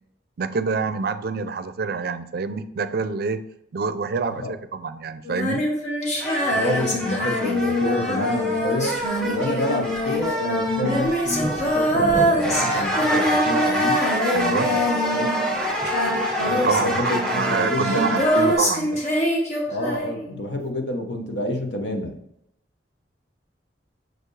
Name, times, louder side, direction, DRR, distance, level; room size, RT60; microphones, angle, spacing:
voice 1, 0.4-3.5 3.7-5.6 14.3-14.7 16.6-19.0, right 4 dB, 60° right, 12 dB, 0.4 m, -26 dB
Female singing, 5.2-15.6 15.8-20.3, equal, 40° left, 1.5 m, -24 dB
sound 1, 6.2-18.5, right 1 dB, 5° left, 1.2 m, -27 dB
voice 2, 6.5-14.0 15.0-15.3 16.4-18.2 19.7-22.2, left 1 dB, 85° left, 4 dB, 1.0 m, -28 dB
6.4 x 4.5 x 3.2 m, 0.79 s
head